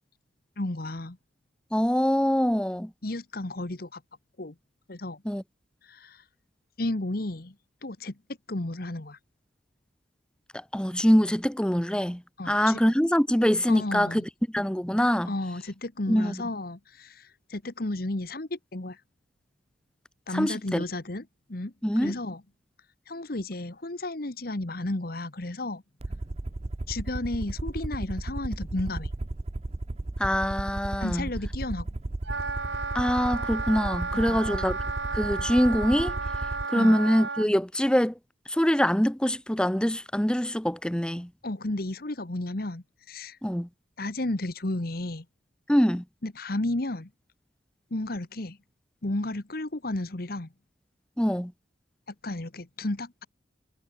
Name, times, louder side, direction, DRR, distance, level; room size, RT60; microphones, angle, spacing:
voice 1, 0.6-1.2 3.0-4.0 4.4-4.5 4.9-5.2 5.8-6.2 6.8-7.5 7.8-8.2 8.5-9.2 12.4-12.8 13.7-14.2 15.3-19.0 20.3-21.7 22.0-22.4 23.1-25.8 26.9-29.1 31.0-31.9 34.1-34.6 36.7-37.0 41.4-43.4 44.0-45.2 46.2-47.1 47.9-48.6 49.0-50.5 52.1-53.3, left 2 dB, 55° left, 1.4 m, -33 dB
voice 2, 1.7-2.9 5.2-5.4 10.5-14.2 14.5-15.3 16.1-16.4 20.3-20.8 21.8-22.1 30.2-31.3 32.9-34.8 35.1-36.2 36.7-38.1 38.5-41.3 43.4-43.7 45.7-46.0 51.2-51.5, equal, 5° left, 1.2 m, -24 dB
Aircraft, 26.0-36.7, right 2 dB, 35° right, 0.6 m, -34 dB
Wind instrument woodwind instrument, 32.2-37.5, right 4 dB, 75° right, 4.7 m, -33 dB
head